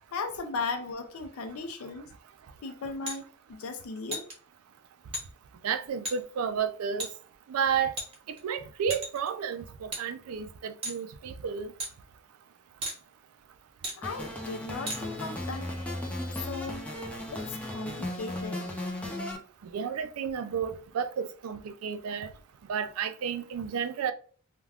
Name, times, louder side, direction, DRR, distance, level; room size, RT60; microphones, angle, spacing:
voice 1, 0.1-2.1 2.6-4.3 14.0-15.7 16.3-16.9 17.3-18.7, left 4 dB, 70° left, 0.4 m, -37 dB
sound 1, 3.1-3.2 4.1-4.3 5.1-5.3 6.1-6.2 7.0-7.1 8.0-8.4 8.9-9.3 9.9-10.0 10.8-11.0 11.8-11.9 12.8-13.0 13.8-14.0 14.9-15.0, right 1 dB, 25° right, 0.8 m, -34 dB
voice 2, 5.6-7.1 7.5-7.9 8.3-11.7 19.6-22.3 22.7-24.1, right 7 dB, 75° right, 0.4 m, -32 dB
sound 2, 14.0-19.4, left 1 dB, 5° left, 0.5 m, -36 dB
2.3 x 2.2 x 3.3 m
head